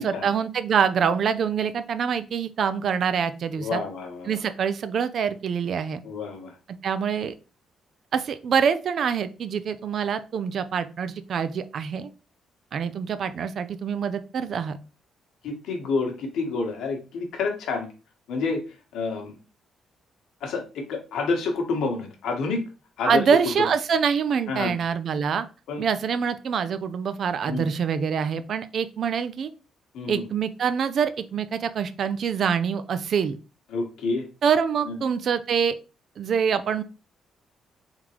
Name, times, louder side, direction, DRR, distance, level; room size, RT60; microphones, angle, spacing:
voice 1, 0.0-3.8 4.3-6.0 6.8-7.3 8.1-12.1 12.7-14.8 23.1-25.5 25.8-29.5 30.1-33.4 34.4-35.7 36.2-36.8, right 7 dB, 60° right, 12 dB, 0.4 m, -25 dB
voice 2, 3.5-4.4 6.0-6.6 15.4-17.9 18.3-18.6 18.9-19.3 20.4-22.7 23.0-23.2 23.6-23.7 24.5-24.7 25.7-25.9 27.5-27.7 29.9-30.2 33.7-34.3 34.8-35.0, left 4 dB, 80° left, 2 dB, 1.2 m, -28 dB
3.7 x 3.6 x 2.9 m, 0.32 s
cardioid pair, 90°, 0 cm